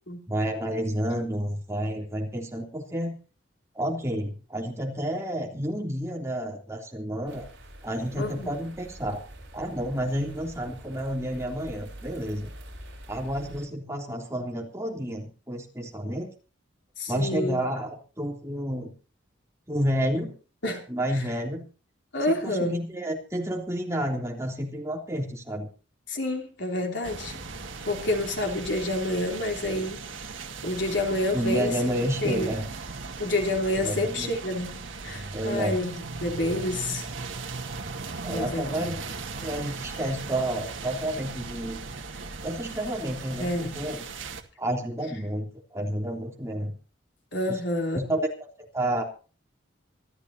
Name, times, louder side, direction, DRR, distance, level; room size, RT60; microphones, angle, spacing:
voice 1, 0.3-3.1 3.7-7.5 7.8-9.2 9.5-12.5 13.1-16.3 17.1-18.9 19.7-20.3 20.9-21.7 22.3-25.7 31.3-32.7 33.8-34.4 35.3-35.8 38.2-39.0 39.4-41.8 42.4-44.0 44.6-46.8 47.5-47.6 47.9-48.5 48.7-49.0, right 1 dB, 15° right, 0 dB, 3.2 m, -30 dB
sound 1, 7.3-13.7, right 1 dB, 60° right, 7.9 m, -46 dB
voice 2, 8.2-8.5 17.0-17.6 20.6-20.8 21.1-21.2 22.1-22.8 26.1-27.4 27.9-30.0 30.6-31.7 32.2-32.5 33.2-34.8 35.0-37.1 38.3-38.8 43.4-43.8 47.3-48.0, left 1 dB, 65° left, 2 dB, 3.3 m, -28 dB
Rainy street in Maribor, 27.0-44.4, right 4 dB, 75° right, 1.8 m, -38 dB
26.0 x 12.5 x 2.8 m, 0.36 s
head